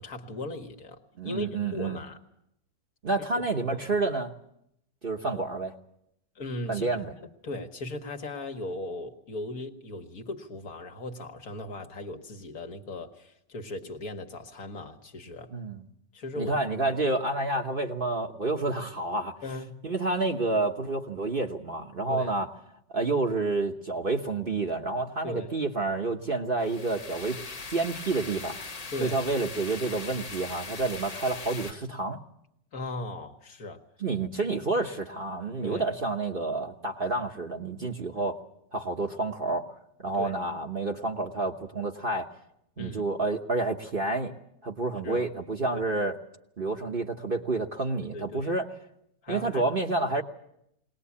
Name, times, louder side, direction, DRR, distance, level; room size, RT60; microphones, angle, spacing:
voice 1, 0.0-2.2 3.7-4.0 6.3-7.1 7.4-15.5 16.1-16.6 19.4-19.8 22.1-22.3 25.2-25.5 28.9-29.2 32.7-33.8 35.6-35.9 40.1-40.3 42.8-43.0 45.0-45.3 45.7-45.8 48.1-48.5 49.2-49.7, left 2 dB, 60° left, 5 dB, 1.9 m, -38 dB
voice 2, 1.2-2.0 3.0-4.3 5.0-5.7 6.7-7.1 15.5-15.8 16.4-19.3 19.8-22.5 22.9-32.2 34.0-38.4 38.7-39.7 40.0-42.3 42.8-44.3 44.6-46.2 46.6-48.7 49.3-50.2, right 3 dB, 35° right, 3 dB, 1.2 m, -29 dB
sound 1, 26.6-31.7, left 4 dB, 30° left, 0.7 m, -40 dB
21.5 x 19.0 x 8.5 m, 0.78 s
omnidirectional pair, 1.8 m